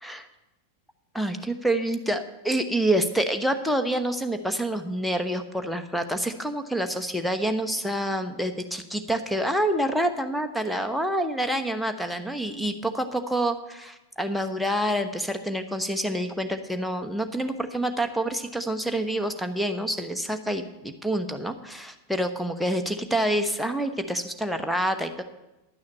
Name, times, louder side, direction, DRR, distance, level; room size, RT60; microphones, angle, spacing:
voice 1, 1.1-25.2, right 1 dB, ahead, 6 dB, 1.1 m, -27 dB
11.0 x 6.3 x 8.7 m, 0.98 s
figure-of-eight pair, 90°, 0 cm